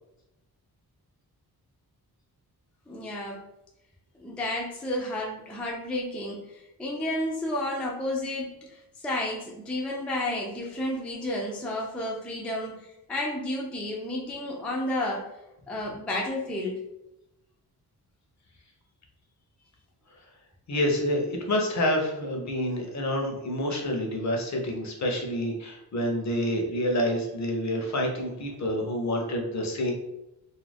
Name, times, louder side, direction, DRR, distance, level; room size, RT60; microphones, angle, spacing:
voice 1, 2.9-3.4 4.2-15.3 15.7-16.8, left 1 dB, 5° left, -3 dB, 0.3 m, -31 dB
voice 2, 20.7-29.9, left 1 dB, 45° left, 1 dB, 0.6 m, -28 dB
2.4 x 2.1 x 3.3 m, 0.90 s
wide cardioid pair, 140°, 39 cm